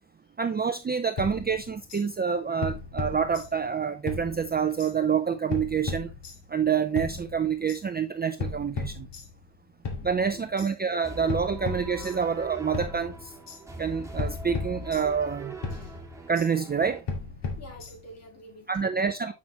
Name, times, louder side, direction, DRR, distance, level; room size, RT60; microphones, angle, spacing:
voice 1, 0.4-6.1 6.5-9.1 10.0-13.3 13.8-15.5 16.3-17.0 18.7-19.3, right 6 dB, 25° right, 0.5 m, -27 dB
sound 1, 1.2-2.0 2.6-3.8 4.1-4.9 5.5-6.6 7.0-7.8 8.4-9.6 9.9-10.7 11.3-12.5 12.7-13.6 14.2-15.4 15.6-16.5 17.1-18.2, left 4 dB, 70° left, 2.1 m, -36 dB
voice 2, 10.3-10.7 12.2-12.3 15.7-16.0 17.6-19.0, equal, 35° left, 2.6 m, -48 dB
sound 2, 11.0-17.0, right 1 dB, 5° right, 2.0 m, -41 dB
7.3 x 6.0 x 3.0 m
cardioid pair, 115°, 44 cm